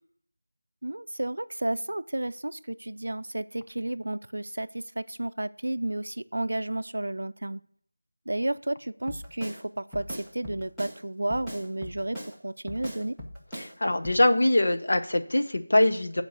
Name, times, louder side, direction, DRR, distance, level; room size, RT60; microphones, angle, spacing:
voice 1, 0.8-7.6 8.3-13.2, right 1 dB, 65° right, 14 dB, 0.5 m, -32 dB
Drum kit, 9.1-9.6 9.9-11.0 11.3-12.3 12.7-13.7 14.0-14.2, equal, ahead, 0.6 m, -39 dB
voice 2, 13.5-16.2, left 1 dB, 45° left, 7 dB, 0.8 m, -23 dB
8.1 x 4.6 x 6.6 m, 0.63 s
figure-of-eight pair, 180°, 0 cm